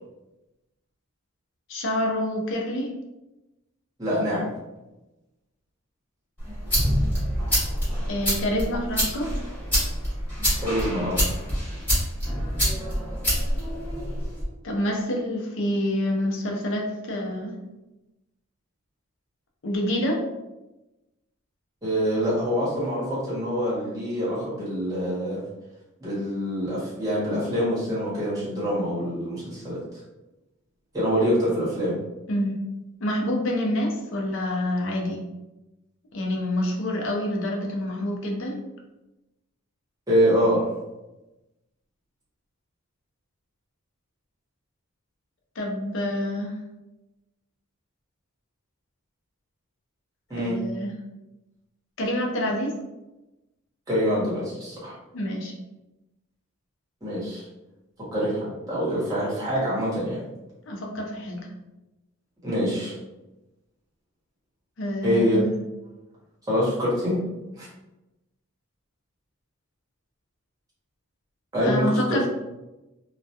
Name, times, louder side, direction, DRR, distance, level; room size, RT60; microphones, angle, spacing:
voice 1, 1.7-2.9 8.1-9.3 14.6-17.6 19.6-20.2 32.3-32.6 33.0-35.2 36.1-38.6 45.6-46.5 50.3-50.9 52.0-52.7 55.1-55.5 60.7-61.5 64.8-65.6 71.6-72.3, left 1 dB, 60° left, 0 dB, 0.5 m, -27 dB
voice 2, 4.0-4.5 10.6-11.3 21.8-25.4 26.0-29.8 30.9-32.0 40.1-40.7 50.3-50.6 53.9-54.9 57.0-57.4 58.0-60.2 62.4-62.9 65.0-65.4 66.5-67.2 67.5-67.7 71.5-72.3, equal, 15° right, -8 dB, 1.0 m, -25 dB
sound 1, 6.4-14.4, equal, 10° left, 1.2 m, -26 dB
2.2 x 2.2 x 2.7 m, 1.0 s
head